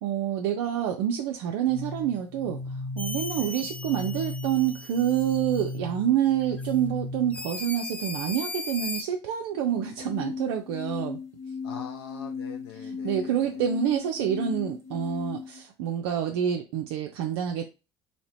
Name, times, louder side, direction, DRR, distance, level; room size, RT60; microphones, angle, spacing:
voice 1, 0.0-2.6 3.0-11.2 12.9-17.6, right 10 dB, 70° right, 0.4 m, -27 dB
sound 1, 1.7-7.6 9.7-15.6, left 4 dB, 60° left, 1.3 m, -36 dB
sound 2, 3.0-5.8 6.6-6.7 7.3-9.0, left 3 dB, 10° left, 0.4 m, -37 dB
voice 2, 3.4-3.7 11.6-13.6, left 8 dB, 80° left, 0.4 m, -43 dB
2.8 x 2.8 x 3.1 m
hypercardioid pair, 60°, 13 cm